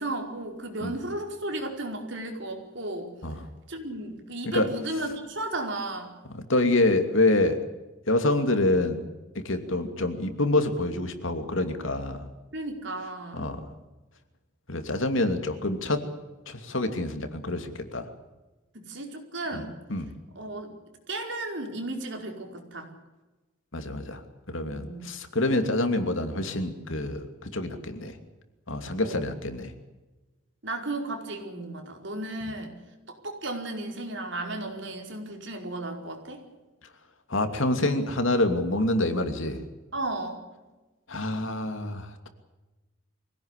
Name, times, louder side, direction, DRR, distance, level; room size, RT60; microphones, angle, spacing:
voice 1, 0.0-3.1 3.7-6.1 12.5-13.6 18.7-19.7 20.3-20.7 21.1-22.9 24.7-25.0 29.0-29.2 30.6-32.7 33.1-36.4 39.9-40.4, right 2 dB, 60° right, 3 dB, 4.9 m, -34 dB
voice 2, 6.5-7.6 8.1-9.0 9.3-12.3 13.3-13.7 14.7-16.0 16.5-18.1 19.6-19.7 19.9-20.1 23.7-24.2 24.5-28.2 28.7-29.7 37.3-39.6 41.1-42.3, left 2 dB, 70° left, 7 dB, 2.7 m, -26 dB
24.5 x 17.5 x 8.4 m, 1.1 s
head